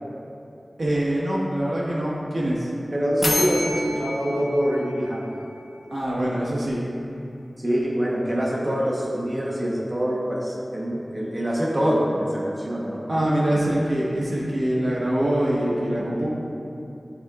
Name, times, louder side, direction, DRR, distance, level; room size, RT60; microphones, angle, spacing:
voice 1, 0.8-2.7 5.9-6.8 13.1-16.3, right 1 dB, 80° right, -6 dB, 1.3 m, -24 dB
voice 2, 2.9-5.4 7.6-13.0, equal, 35° right, -4 dB, 1.1 m, -25 dB
sound 1, 3.2-6.0, left 1 dB, 60° left, 0.9 m, -29 dB
9.0 x 4.2 x 2.4 m, 2.8 s
wide cardioid pair, 60°, 0 cm